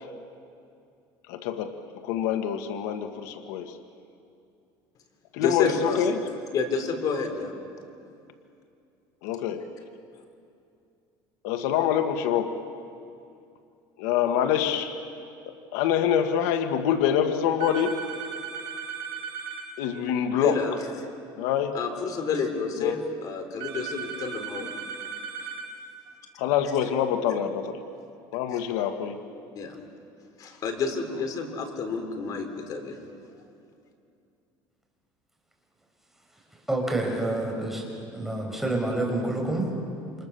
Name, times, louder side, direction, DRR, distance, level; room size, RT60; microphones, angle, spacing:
voice 1, 1.3-1.7 2.0-3.8 5.3-6.2 9.2-9.7 11.4-12.6 14.0-14.9 15.4-18.0 19.8-20.6 21.4-21.8 22.8-23.0 26.4-27.8 28.3-29.2, left 9 dB, 85° left, 6 dB, 1.6 m, -26 dB
voice 2, 5.4-6.1 6.5-7.5 20.3-20.9 21.7-24.7 28.5-28.6 29.6-29.8 30.4-33.0, left 5 dB, 45° left, 5 dB, 3.8 m, -29 dB
sound 1, 17.6-19.7 23.6-25.7, right 6 dB, 65° right, 5.7 m, -36 dB
voice 3, 36.7-37.8 38.1-39.7, right 2 dB, 5° right, 0 dB, 5.7 m, -27 dB
29.0 x 27.5 x 6.9 m, 2.5 s
cardioid pair, 140°, 9 cm